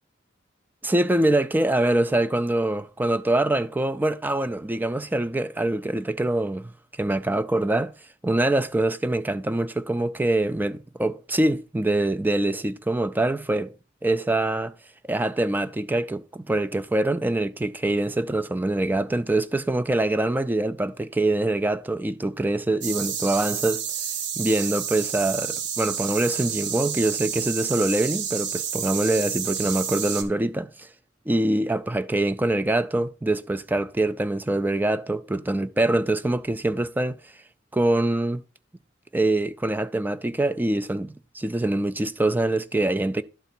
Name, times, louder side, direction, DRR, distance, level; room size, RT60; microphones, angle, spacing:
voice 1, 0.8-6.7 7.0-7.9 8.2-13.7 14.0-14.7 15.1-23.9 24.4-30.9 31.3-37.2 37.7-38.4 39.1-43.2, right 2 dB, 10° right, 0.3 m, -24 dB
sound 1, 22.8-30.2, right 8 dB, 65° right, 1.1 m, -30 dB
11.5 x 4.0 x 4.3 m
head